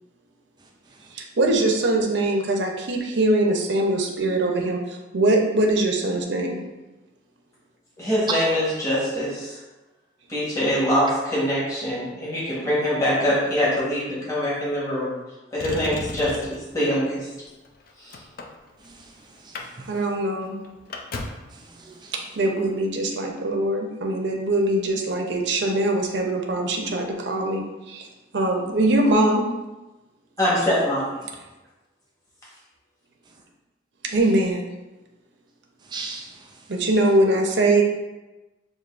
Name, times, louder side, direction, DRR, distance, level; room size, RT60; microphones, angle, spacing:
voice 1, 1.1-6.6 19.9-20.6 22.1-28.1 28.3-29.5 34.1-34.6 36.7-37.8, right 1 dB, 65° right, 1 dB, 0.6 m, -22 dB
voice 2, 8.0-9.6 10.3-15.1 15.5-17.3 18.0-18.2 30.4-31.1, equal, 15° left, -8 dB, 1.2 m, -24 dB
Motor vehicle (road), 15.6-16.7 17.5-19.0 19.4-19.7 20.0-20.1 20.4-21.5 22.6-22.7, left 2 dB, 50° left, 0.4 m, -35 dB
voice 3, 18.8-20.0 21.5-22.1 35.8-36.7, right 4 dB, 20° right, 0 dB, 0.3 m, -40 dB
6.4 x 2.6 x 2.5 m, 1.1 s
head